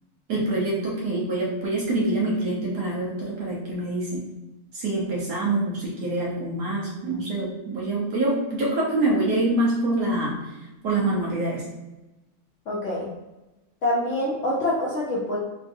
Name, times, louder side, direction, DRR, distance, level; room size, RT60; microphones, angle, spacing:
voice 1, 0.3-4.3 4.7-10.5 10.8-11.7, right 2 dB, 60° right, -5 dB, 1.3 m, -25 dB
voice 2, 12.7-13.1 13.8-15.4, left 1 dB, 90° left, -6 dB, 0.6 m, -25 dB
3.7 x 2.6 x 2.5 m, 1.0 s
omnidirectional pair, 2.1 m